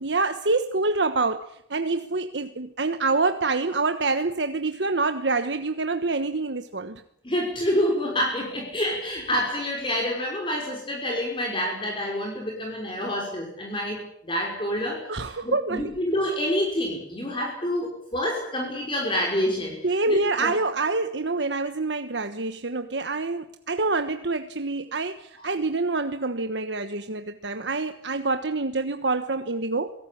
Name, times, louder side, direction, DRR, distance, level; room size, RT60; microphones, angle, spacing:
voice 1, 0.0-7.0 15.1-15.9 19.8-29.9, right 3 dB, 90° right, 8 dB, 1.3 m, -26 dB
voice 2, 7.2-19.8 20.1-20.5 25.4-25.5, equal, 30° left, -1 dB, 5.9 m, -28 dB
27.0 x 18.5 x 8.7 m, 0.72 s
head